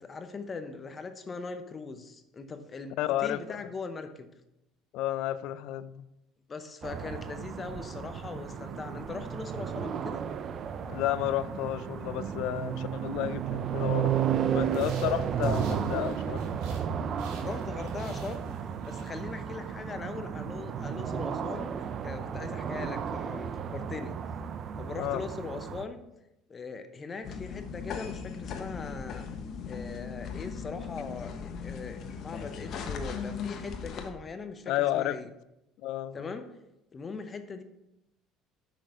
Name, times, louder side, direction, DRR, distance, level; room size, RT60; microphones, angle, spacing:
voice 1, 0.0-4.3 6.5-10.2 17.4-18.6 18.9-24.2 24.8-26.0 26.5-29.3 29.7-35.3 36.1-36.5 36.9-37.6, left 4 dB, 30° left, 9 dB, 0.8 m, -40 dB
voice 2, 3.0-3.6 4.9-6.1 10.9-14.2 14.5-16.6 24.9-25.2 34.7-35.2 35.8-36.3, left 13 dB, 70° left, 15 dB, 0.4 m, -31 dB
sound 1, 6.8-25.9, right 8 dB, 45° right, 0.5 m, -33 dB
sound 2, 14.7-16.9 17.2-19.8, right 4 dB, 75° right, 2.4 m, -53 dB
sound 3, 27.2-34.1, left 6 dB, 55° left, 1.0 m, -38 dB
6.4 x 6.3 x 4.9 m, 0.89 s
supercardioid pair, 95°, 0 cm